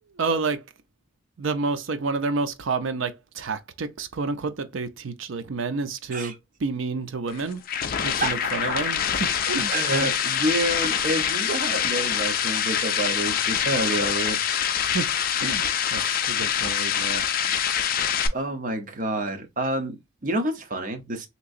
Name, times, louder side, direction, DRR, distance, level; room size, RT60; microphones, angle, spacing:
voice 1, 0.2-0.6 1.4-6.3 6.6-7.6 8.0-9.7 14.8-15.1 15.4-17.3, right 4 dB, 70° right, 0.5 m, -29 dB
sound 1, 7.3-18.3, left 8 dB, 45° left, 0.4 m, -25 dB
voice 2, 9.7-14.4 17.5-17.8 18.3-21.3, right 1 dB, 40° right, 0.8 m, -28 dB
3.6 x 2.9 x 2.5 m
head